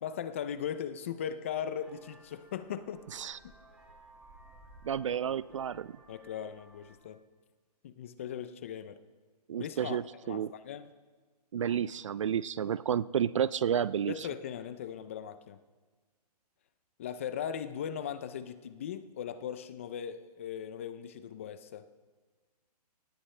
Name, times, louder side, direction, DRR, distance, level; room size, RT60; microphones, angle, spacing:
voice 1, 0.0-3.0 6.1-7.2 7.8-9.0 9.6-10.9 14.1-15.6 17.0-21.9, left 8 dB, 20° left, 13 dB, 0.4 m, -38 dB
Vehicle horn car horn honking, 1.8-7.0, right 1 dB, 5° right, 1.9 m, -58 dB
voice 2, 4.8-5.9 9.5-10.5 11.5-14.3, right 8 dB, 50° right, 20 dB, 0.4 m, -31 dB
23.5 x 18.5 x 3.2 m, 1.3 s
hypercardioid pair, 165°, 21 cm